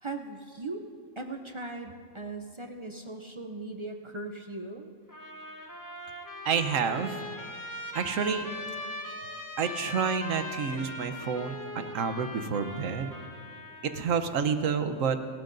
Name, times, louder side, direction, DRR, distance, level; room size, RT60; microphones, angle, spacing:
voice 1, 0.0-0.8 1.2-4.9, right 2 dB, 40° right, 5 dB, 0.4 m, -39 dB
Trumpet, 5.1-14.2, left 1 dB, 15° left, 1.2 m, -40 dB
voice 2, 6.4-7.2 7.9-8.5 9.6-13.1 13.8-15.2, right 6 dB, 75° right, 9 dB, 1.2 m, -29 dB
29.5 x 13.0 x 2.6 m, 2.2 s
omnidirectional pair, 1.4 m